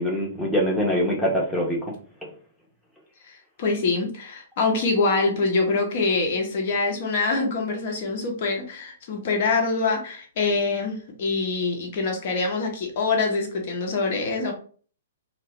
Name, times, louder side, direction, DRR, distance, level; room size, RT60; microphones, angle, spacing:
voice 1, 0.0-1.9 2.2-2.3, equal, ahead, -3 dB, 0.8 m, -24 dB
voice 2, 3.2-14.5, left 3 dB, 45° left, 2 dB, 0.8 m, -25 dB
2.7 x 2.0 x 3.3 m, 0.43 s
figure-of-eight pair, 115°, 0 cm